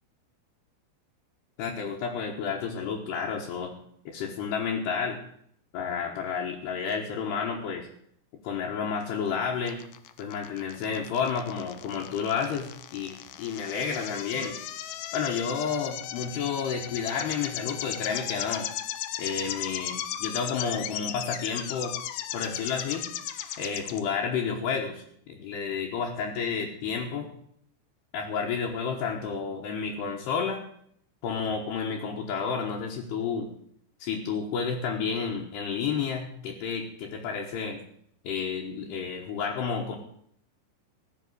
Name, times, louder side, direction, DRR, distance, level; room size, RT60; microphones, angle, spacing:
voice 1, 1.6-3.8 4.1-5.2 5.7-7.9 8.3-9.8 10.2-14.6 15.1-18.7 19.2-21.9 22.3-23.1 23.6-27.3 28.1-30.6 31.2-33.5 34.0-37.8 38.2-40.0, left 6 dB, 70° left, -3 dB, 3.3 m, -31 dB
sound 1, 9.7-24.0, left 12 dB, 90° left, 2.2 m, -36 dB
16.0 x 6.6 x 7.9 m, 0.67 s
omnidirectional pair, 5.5 m